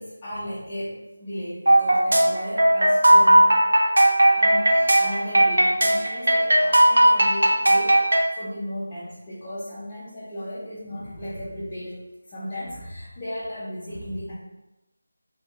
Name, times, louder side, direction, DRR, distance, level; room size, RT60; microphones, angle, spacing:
voice 1, 0.0-3.5 4.4-8.0 8.3-14.4, equal, 10° left, -13 dB, 0.4 m, -35 dB
sound 1, 1.7-8.2, right 1 dB, 90° right, 0.5 m, -17 dB
2.9 x 2.1 x 3.1 m, 0.99 s
figure-of-eight pair, 180°, 0 cm